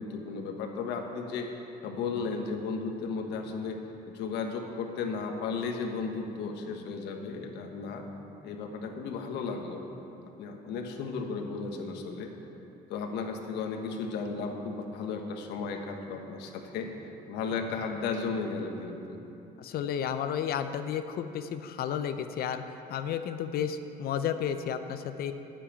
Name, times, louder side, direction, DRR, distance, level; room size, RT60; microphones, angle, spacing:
voice 1, 0.0-1.5 1.8-3.8 4.1-8.1 8.4-9.8 10.4-12.3 12.9-16.9 17.3-19.2, left 4 dB, 85° left, 3 dB, 1.3 m, -34 dB
voice 2, 19.6-25.3, left 8 dB, 65° left, 9 dB, 0.6 m, -32 dB
10.0 x 7.6 x 8.6 m, 2.9 s
cardioid pair, 110°, 17 cm